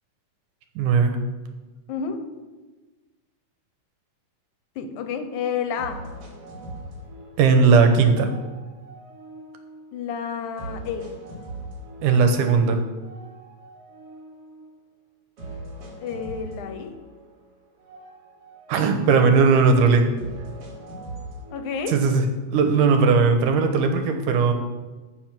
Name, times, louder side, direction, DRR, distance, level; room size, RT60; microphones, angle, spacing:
voice 1, 0.8-1.2 7.4-8.3 12.0-12.8 18.7-20.1 21.9-22.2 22.5-24.5, right 5 dB, 85° right, 6 dB, 2.6 m, -18 dB
voice 2, 1.9-2.2 4.8-6.0 9.9-11.1 16.0-16.9 21.5-22.0, left 6 dB, 75° left, 7 dB, 2.3 m, -30 dB
sound 1, 5.8-7.8 8.2-10.0 10.6-12.6 13.0-14.8 15.4-17.5 17.8-19.6 20.2-22.2, right 1 dB, 50° right, 3.0 m, -41 dB
14.0 x 5.2 x 6.0 m, 1.2 s
omnidirectional pair, 3.6 m